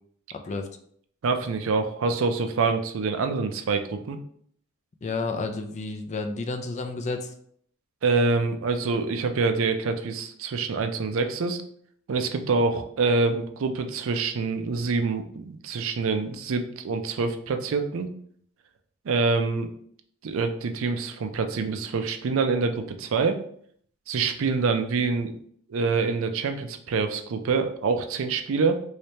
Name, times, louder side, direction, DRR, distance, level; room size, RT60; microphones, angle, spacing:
voice 1, 1.2-4.2 8.0-11.6 12.1-18.1 19.1-19.7 20.2-23.4 24.1-25.4 25.7-28.8, right 4 dB, 65° right, 7 dB, 0.4 m, -26 dB
voice 2, 5.0-7.3, left 3 dB, 35° left, 5 dB, 0.4 m, -31 dB
3.2 x 3.2 x 2.8 m, 0.63 s
head